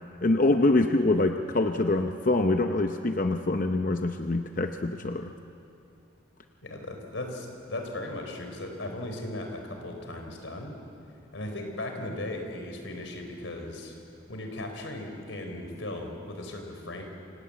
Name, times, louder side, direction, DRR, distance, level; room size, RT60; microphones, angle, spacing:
voice 1, 0.2-5.3, left 2 dB, 45° left, 6 dB, 0.7 m, -25 dB
voice 2, 6.6-10.7 11.3-14.0 14.3-17.0, left 1 dB, 90° left, 4 dB, 4.1 m, -37 dB
27.5 x 17.0 x 8.6 m, 2.7 s
head